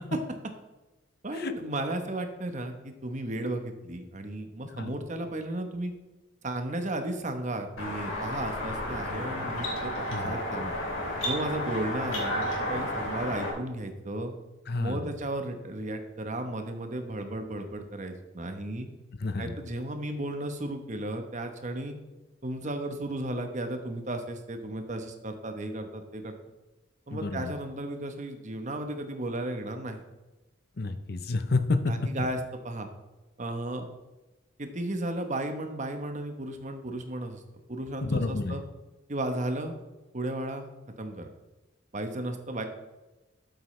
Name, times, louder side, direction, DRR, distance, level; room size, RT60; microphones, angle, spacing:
voice 1, 1.2-5.9 6.4-10.7 11.2-14.3 14.8-18.9 19.4-21.9 22.4-26.3 27.1-30.0 31.9-32.9 33.4-33.9 34.6-37.4 37.7-38.6 39.1-39.7 40.1-40.7 41.0-41.3 41.9-42.6, right 1 dB, 40° right, 6 dB, 1.0 m, -34 dB
sound 1, 7.8-13.5, left 1 dB, 85° left, 3.2 m, -32 dB
voice 2, 14.7-15.1 19.2-19.5 27.1-27.5 30.8-31.8 32.2-32.3 38.0-38.6, left 3 dB, 50° left, 9 dB, 0.7 m, -29 dB
12.5 x 8.1 x 3.3 m, 1.1 s
head